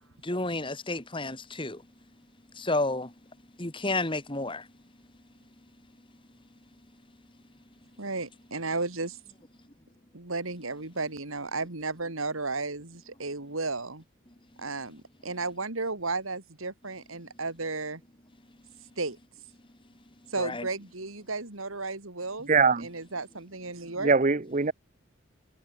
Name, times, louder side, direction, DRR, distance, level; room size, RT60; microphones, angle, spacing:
voice 1, 0.2-1.8 2.5-3.1 3.6-4.7 20.4-20.7, left 2 dB, 25° left, 2.2 m, -31 dB
voice 2, 8.0-9.2 10.1-14.0 14.6-18.0 19.0-19.2 20.3-22.5 22.8-24.1, right 3 dB, 80° right, 3.3 m, -34 dB
voice 3, 22.5-22.9 24.0-24.7, right 4 dB, 35° right, 0.7 m, -22 dB
head